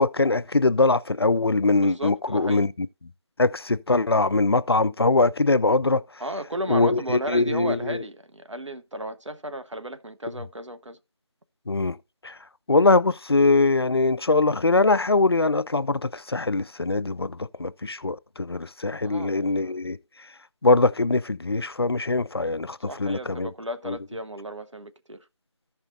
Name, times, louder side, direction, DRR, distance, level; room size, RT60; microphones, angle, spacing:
voice 1, 0.0-2.9 3.4-6.0 6.7-8.0 11.7-12.0 12.2-12.4 12.7-20.0 20.6-23.5 23.9-24.0, left 3 dB, 55° left, 0.4 m, -22 dB
voice 2, 1.7-2.7 6.2-11.0 19.0-19.8 22.9-25.2, right 1 dB, 75° right, 0.9 m, -34 dB
15.0 x 5.6 x 2.6 m
figure-of-eight pair, 165°, 16 cm